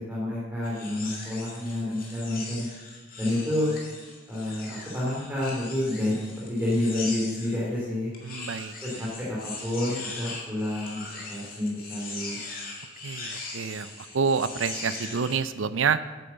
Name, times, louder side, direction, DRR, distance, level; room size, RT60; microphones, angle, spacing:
voice 1, 0.0-2.7 3.2-3.7 4.3-8.1 8.8-12.4, left 1 dB, 10° right, -7 dB, 2.6 m, -29 dB
sound 1, 0.6-7.6 8.1-15.4, left 3 dB, 45° left, 2.3 m, -40 dB
voice 2, 8.2-9.1 13.0-16.0, right 5 dB, 80° right, 14 dB, 0.5 m, -28 dB
9.2 x 8.5 x 7.1 m, 1.3 s
head